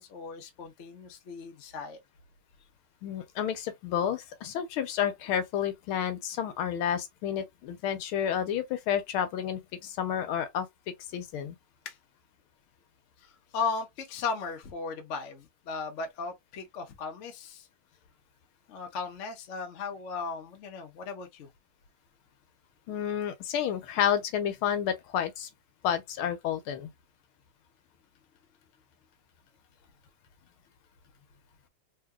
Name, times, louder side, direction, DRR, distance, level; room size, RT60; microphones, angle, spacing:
voice 1, 0.0-2.0 11.8-11.9 13.2-17.7 18.7-21.5, left 5 dB, 55° left, 0.8 m, -36 dB
voice 2, 3.0-10.7 11.1-11.5 22.9-25.5 25.8-26.9, left 9 dB, 80° left, 1.5 m, -30 dB
3.7 x 2.8 x 2.3 m
omnidirectional pair, 2.4 m